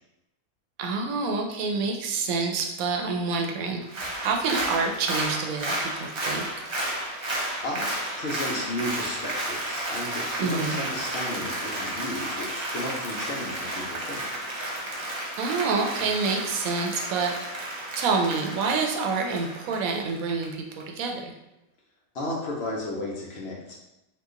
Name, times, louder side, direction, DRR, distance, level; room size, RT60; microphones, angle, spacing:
voice 1, 0.8-6.7 10.4-10.8 15.4-17.4 18.0-21.3, right 4 dB, 80° right, 2 dB, 1.0 m, -27 dB
Applause, 3.8-20.4 20.8-20.9, right 1 dB, 50° right, 0.3 m, -32 dB
voice 2, 7.6-14.2 22.1-23.8, left 1 dB, 60° left, -3 dB, 0.8 m, -34 dB
2.9 x 2.4 x 3.6 m, 0.93 s
omnidirectional pair, 1.4 m